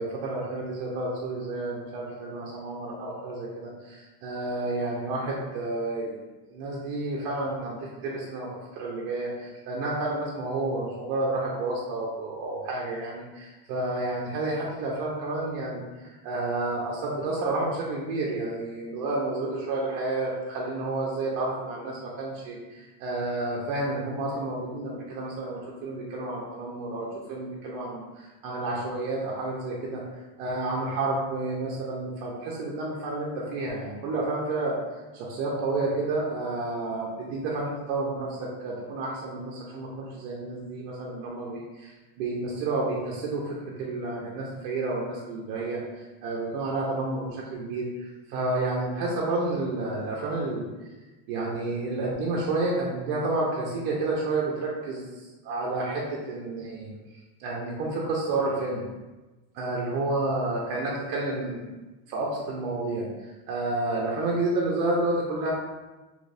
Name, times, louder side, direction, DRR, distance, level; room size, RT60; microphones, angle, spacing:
voice 1, 0.0-6.2 6.5-8.5 8.7-15.8 16.2-30.0 30.4-34.8 35.1-45.8 46.2-50.7 51.3-56.9 57.4-58.8 59.5-61.6 62.1-63.1 63.5-65.5, right 2 dB, 70° right, -4 dB, 0.8 m, -30 dB
3.0 x 2.7 x 3.3 m, 1.2 s
cardioid pair, 170°, 42 cm